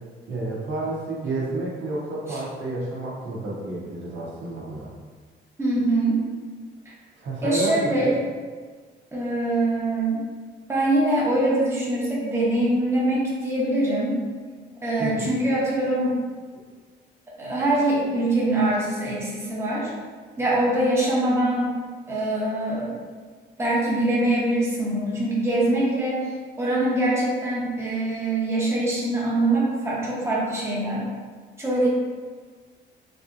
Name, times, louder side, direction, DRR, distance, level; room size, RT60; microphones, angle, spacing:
voice 1, 0.3-4.9 7.1-8.2 15.0-15.4, right 2 dB, 70° right, -5 dB, 0.9 m, -30 dB
voice 2, 5.6-6.2 7.4-8.1 9.1-10.3 10.7-14.2 14.8-16.2 17.4-19.9 20.4-21.7 22.1-22.9 23.6-26.2 26.6-31.0 31.6-31.9, right 1 dB, 15° right, -7 dB, 1.0 m, -23 dB
3.5 x 2.7 x 2.5 m, 1.5 s
cardioid pair, 90°, 20 cm